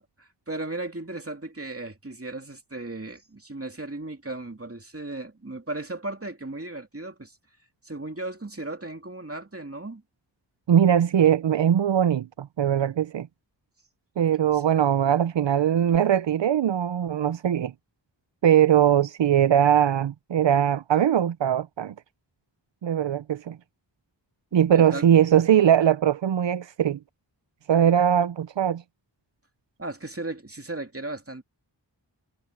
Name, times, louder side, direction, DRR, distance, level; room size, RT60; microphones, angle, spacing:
voice 1, 0.0-7.4 7.8-10.0 14.5-14.6 24.7-25.0 29.8-31.4, right 2 dB, 30° right, 2.6 m, -36 dB
voice 2, 10.7-13.3 14.2-17.7 18.4-21.9 22.8-23.6 24.5-27.0 27.7-28.8, right 9 dB, 80° right, 0.6 m, -21 dB
wide cardioid pair, 50°, 44 cm